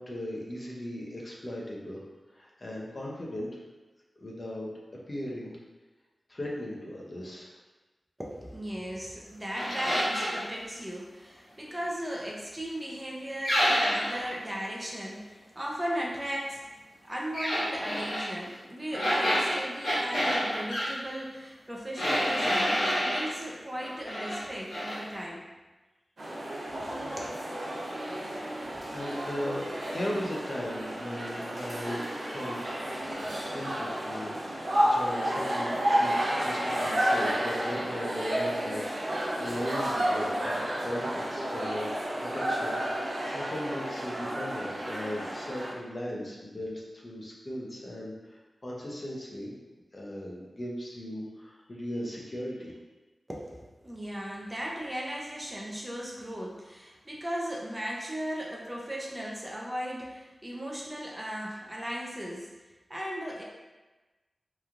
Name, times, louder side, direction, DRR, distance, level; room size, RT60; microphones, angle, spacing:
voice 1, 0.0-2.0 2.3-3.6 4.2-5.6 6.3-7.6 28.9-41.9 42.2-49.5 49.9-52.8, equal, 35° left, -4 dB, 0.5 m, -38 dB
voice 2, 8.2-16.6 17.0-25.4 26.8-26.9 27.2-27.4 53.3-62.5 62.9-63.4, equal, 15° right, -3 dB, 0.4 m, -37 dB
sound 1, 9.5-10.4 13.4-14.3 17.3-18.3 18.9-20.9 22.0-23.3 23.8-24.4 24.7-25.0, equal, 90° left, 1.2 m, -28 dB
sound 2, 26.2-45.7, equal, 65° right, 0.6 m, -31 dB
3.0 x 2.3 x 2.4 m, 1.2 s
wide cardioid pair, 95°, 0 cm